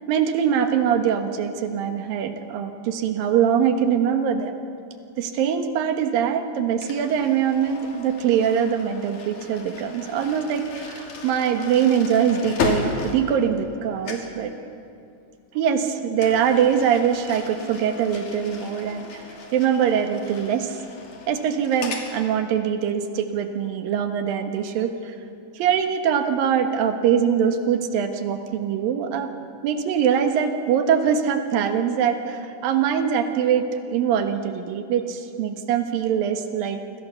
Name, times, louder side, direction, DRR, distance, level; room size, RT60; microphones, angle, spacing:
voice 1, 0.0-4.5 5.2-14.5 15.5-20.8 21.3-25.2 25.5-29.3 29.6-36.8, right 8 dB, 80° right, 6 dB, 3.2 m, -23 dB
sound 1, 6.8-13.8 14.0-14.4 16.2-22.1, left 4 dB, 60° left, 4.1 m, -34 dB
28.5 x 25.0 x 7.1 m, 2.7 s
omnidirectional pair, 4.0 m